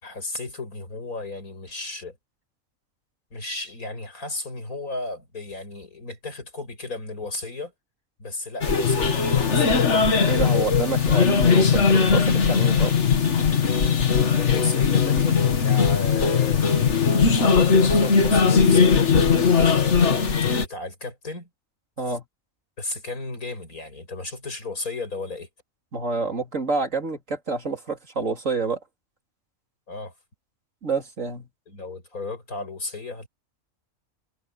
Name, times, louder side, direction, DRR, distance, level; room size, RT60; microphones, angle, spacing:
voice 1, 0.0-2.2 3.3-7.7 8.2-9.9 14.3-16.7 17.2-20.0 20.6-21.5 22.1-22.2 22.8-25.5 29.9-30.1 31.7-33.3, left 2 dB, 90° left, 7.4 m, -34 dB
sound 1, 8.6-20.7, left 5 dB, 55° left, 1.8 m, -19 dB
voice 2, 10.3-13.0 19.3-19.5 22.0-22.2 25.9-28.8 30.8-31.5, right 4 dB, 65° right, 3.9 m, -28 dB
omnidirectional pair, 1.5 m